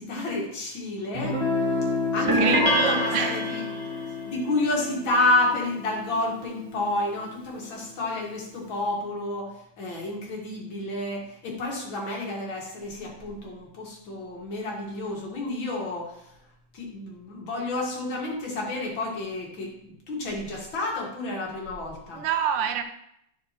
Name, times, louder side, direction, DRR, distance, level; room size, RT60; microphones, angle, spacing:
voice 1, 0.0-1.4 2.1-3.7 4.3-16.3 16.7-22.2, left 2 dB, 85° left, -2 dB, 2.5 m, -30 dB
Guitar, 1.1-6.9, left 3 dB, 5° left, 1.2 m, -31 dB
sound 1, 2.3-4.0, equal, 20° right, 0.8 m, -24 dB
voice 2, 2.4-3.4 22.1-22.8, right 8 dB, 75° right, 8 dB, 1.3 m, -27 dB
9.5 x 6.2 x 2.9 m, 0.77 s
omnidirectional pair, 2.1 m